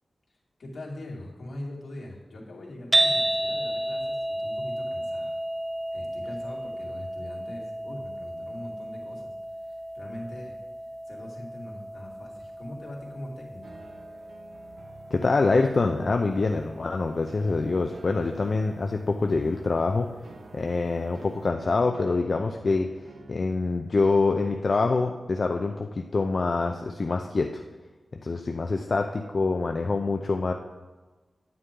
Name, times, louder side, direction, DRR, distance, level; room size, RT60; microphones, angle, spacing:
voice 1, 0.3-5.4 5.9-9.3 9.6-10.6 11.1-13.8, left 1 dB, 75° left, -4 dB, 2.6 m, -42 dB
sound 1, 2.9-19.2, right 1 dB, 30° right, 0.9 m, -33 dB
sound 2, 13.6-23.4, right 3 dB, 80° right, 0.8 m, -49 dB
voice 2, 15.1-20.1 20.5-22.9 23.3-27.6 28.2-30.5, left 3 dB, 55° left, 4 dB, 0.5 m, -25 dB
9.7 x 9.5 x 3.8 m, 1.3 s
wide cardioid pair, 85°, 0 cm